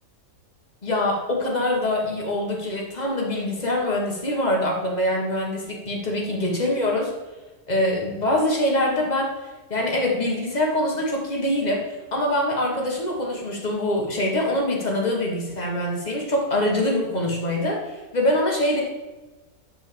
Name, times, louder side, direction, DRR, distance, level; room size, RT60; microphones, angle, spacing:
voice 1, 0.8-7.1 7.7-9.3 9.7-18.8, left 1 dB, 30° left, -1 dB, 1.6 m, -24 dB
7.7 x 4.4 x 6.9 m, 1.2 s
omnidirectional pair, 1.6 m